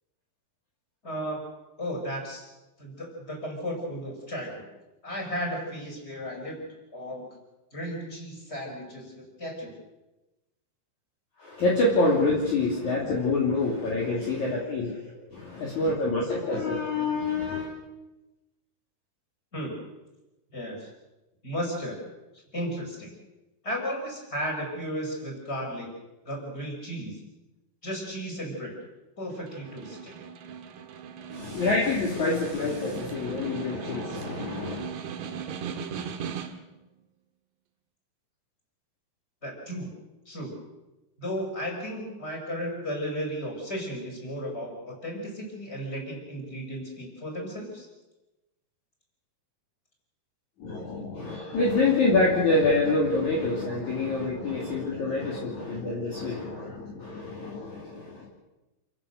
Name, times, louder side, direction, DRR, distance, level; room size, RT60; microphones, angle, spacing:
voice 1, 1.0-1.4 1.8-2.5 2.8-4.6 5.0-6.7 6.9-7.2 7.7-9.7 19.5-19.8 20.5-20.9 21.4-22.0 22.5-23.1 23.6-25.9 26.2-27.2 27.8-28.8 29.2-30.2 39.4-39.9 40.3-40.5 41.2-47.9, equal, 15° left, 0 dB, 6.1 m, -34 dB
voice 2, 11.4-17.7 31.3-34.9 50.6-58.3, left 3 dB, 45° left, -3 dB, 3.9 m, -26 dB
Snare drum, 29.3-36.8, right 7 dB, 75° right, 3.4 m, -38 dB
29.0 x 16.0 x 6.8 m, 1.0 s
omnidirectional pair, 5.0 m